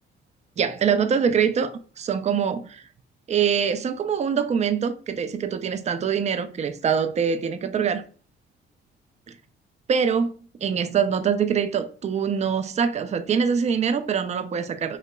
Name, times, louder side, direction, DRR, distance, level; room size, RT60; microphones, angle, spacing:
voice 1, 0.6-2.8 3.3-8.0 9.3-9.4 9.9-10.3 10.6-15.0, right 7 dB, 35° right, 0.4 m, -24 dB
4.1 x 2.8 x 2.2 m
cardioid pair, 90°, 20 cm